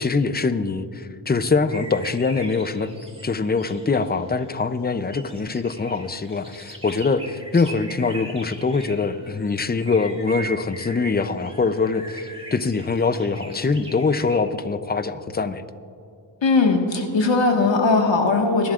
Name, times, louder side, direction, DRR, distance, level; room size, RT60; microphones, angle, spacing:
voice 1, 0.0-2.9 3.2-15.6, left 4 dB, 20° left, 12 dB, 0.5 m, -23 dB
sound 1, 1.7-4.6 5.1-14.4, right 1 dB, 10° right, 1.9 m, -41 dB
voice 2, 16.4-18.7, left 3 dB, 65° left, 2 dB, 1.7 m, -19 dB
22.0 x 11.0 x 2.5 m, 2.6 s
wide cardioid pair, 70°, 47 cm